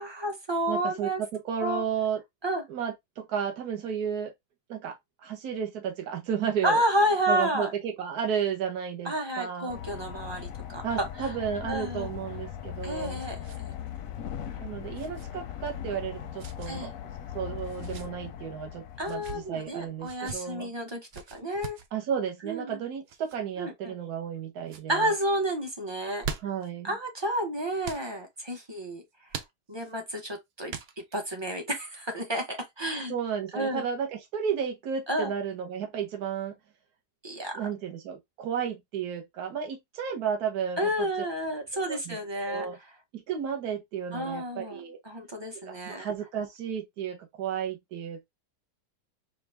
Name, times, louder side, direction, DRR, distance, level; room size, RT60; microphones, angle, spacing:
voice 1, 0.0-1.2 1.6-1.8 2.4-2.6 6.6-7.7 9.0-11.3 11.7-12.1 12.8-13.7 16.7-16.9 19.0-21.8 22.4-22.8 23.6-23.9 24.9-26.2 26.8-29.0 29.7-30.7 31.1-33.2 33.5-33.9 35.1-35.3 37.2-37.6 40.8-42.7 44.1-46.1, equal, 25° right, 0.6 m, -30 dB
voice 2, 0.7-2.2 2.7-4.3 4.7-6.8 7.3-9.8 10.8-13.2 14.6-16.9 17.3-20.7 21.9-25.1 26.4-27.0 33.1-36.5 37.5-41.1 41.9-42.2 42.5-42.8 43.1-45.0 45.7-48.2, right 7 dB, 65° right, 1.5 m, -33 dB
sound 1, 9.7-19.9, left 10 dB, 65° left, 0.9 m, -39 dB
sound 2, 12.3-13.6 13.9-14.0 14.9-15.3 16.4-16.7 17.7-18.1 19.0-19.4 20.0-20.4 21.1-21.9 23.1-23.4 24.0-24.4 24.6-24.9 25.9-26.7 27.8-28.1 29.3-29.9 30.7-31.2, right 6 dB, 85° right, 0.5 m, -41 dB
5.0 x 2.4 x 3.4 m
omnidirectional pair, 1.9 m